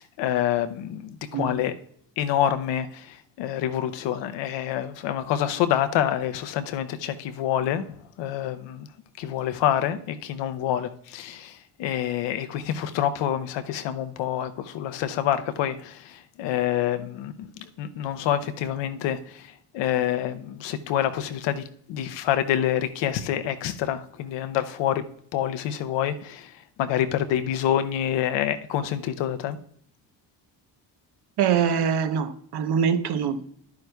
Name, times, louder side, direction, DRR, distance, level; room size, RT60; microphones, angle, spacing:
voice 1, 0.2-1.7 2.2-7.9 8.2-8.9 9.2-17.5 17.8-25.0 25.3-29.6, left 10 dB, 85° left, 0.7 m, -27 dB
voice 2, 31.4-33.5, right 7 dB, 65° right, 0.9 m, -24 dB
10.5 x 9.4 x 2.3 m
cardioid pair, 85°, 42 cm